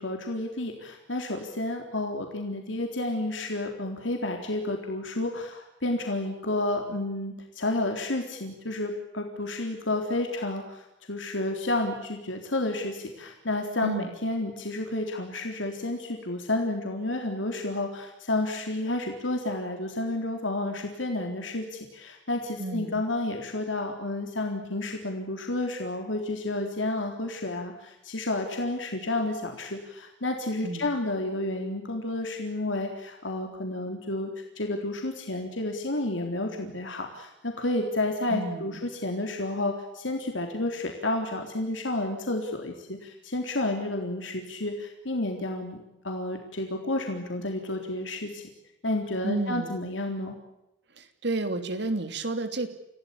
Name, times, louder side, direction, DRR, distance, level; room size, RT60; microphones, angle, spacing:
voice 1, 0.0-34.3 34.6-45.8 46.0-48.4 48.8-50.4, left 2 dB, 75° left, 3 dB, 3.8 m, -31 dB
voice 2, 22.6-23.0 30.6-30.9 38.3-38.8 49.2-49.8 51.0-52.7, right 2 dB, 65° right, 9 dB, 3.0 m, -31 dB
29.0 x 17.0 x 8.6 m, 0.88 s
head